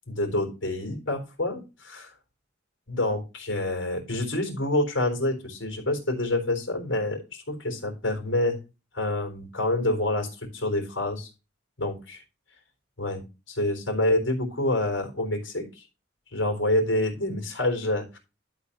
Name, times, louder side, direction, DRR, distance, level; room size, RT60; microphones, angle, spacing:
voice 1, 0.1-2.1 2.9-8.6 8.9-11.3 11.8-12.2 13.0-13.2 13.5-15.9 16.3-18.2, left 1 dB, 85° left, 3 dB, 3.8 m, -27 dB
12.0 x 4.2 x 5.6 m, 0.29 s
head